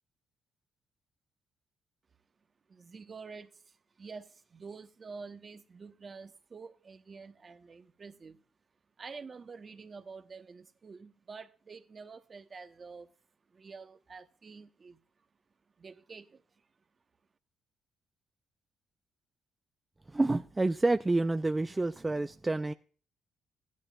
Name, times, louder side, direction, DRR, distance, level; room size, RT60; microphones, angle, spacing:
voice 1, 2.7-8.4 9.0-13.1 13.5-15.0 15.8-16.4, right 4 dB, 35° right, 1.1 m, -48 dB
voice 2, 20.1-22.7, right 2 dB, 15° right, 0.4 m, -28 dB
15.5 x 11.5 x 2.4 m
cardioid pair, 90°, 0 cm